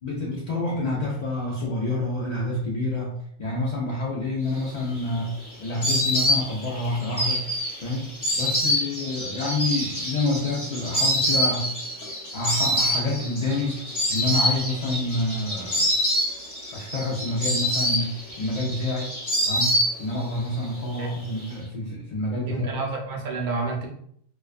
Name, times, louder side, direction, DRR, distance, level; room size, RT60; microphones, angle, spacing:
voice 1, 0.0-7.5 7.8-11.7 12.0-13.8 14.1-15.9 16.7-19.2 19.5-22.8, left 2 dB, 65° left, -5 dB, 0.4 m, -28 dB
Insect, 4.7-20.4 20.6-21.4, equal, 20° left, 0.6 m, -26 dB
voice 2, 22.5-23.9, right 3 dB, 55° right, 1 dB, 0.5 m, -29 dB
2.3 x 2.3 x 2.3 m, 0.68 s
omnidirectional pair, 1.2 m